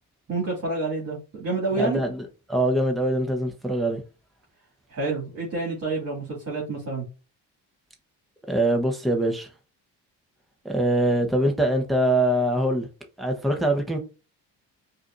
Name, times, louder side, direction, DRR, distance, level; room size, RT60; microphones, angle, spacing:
voice 1, 0.3-2.0 4.9-7.0, right 3 dB, 35° right, 2.1 m, -28 dB
voice 2, 1.8-4.0 8.5-9.5 10.6-12.9 13.2-14.0, right 1 dB, ahead, 0.9 m, -23 dB
4.7 x 2.7 x 2.5 m
supercardioid pair, 60°, 41 cm